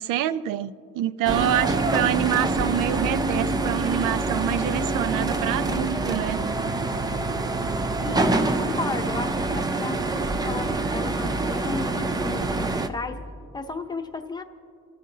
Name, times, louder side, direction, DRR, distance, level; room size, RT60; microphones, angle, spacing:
voice 1, 0.0-6.4, right 12 dB, 80° right, 0.5 m, -26 dB
sound 1, 1.2-12.9, right 2 dB, 15° right, 0.3 m, -26 dB
voice 2, 8.0-13.2 13.5-14.4, left 3 dB, 15° left, 0.7 m, -33 dB
28.5 x 15.0 x 2.8 m
cardioid pair, 170°, 32 cm